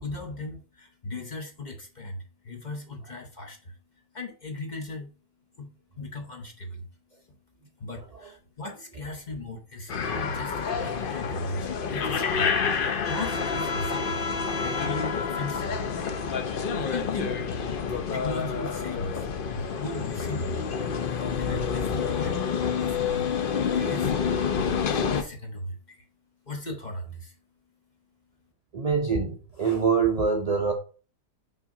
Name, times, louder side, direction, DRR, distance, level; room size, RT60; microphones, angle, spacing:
voice 1, 0.0-3.8 4.1-5.1 5.6-7.4 7.8-12.6 13.1-14.3 14.6-15.9 16.7-17.4 17.9-20.6 21.4-24.1 24.5-26.1 26.5-27.4, left 2 dB, 35° left, 0.9 m, -37 dB
sound 1, 9.9-25.2, left 6 dB, 65° left, 0.5 m, -28 dB
voice 2, 28.7-30.7, right 5 dB, 70° right, 0.3 m, -24 dB
5.8 x 4.5 x 3.7 m
omnidirectional pair, 1.8 m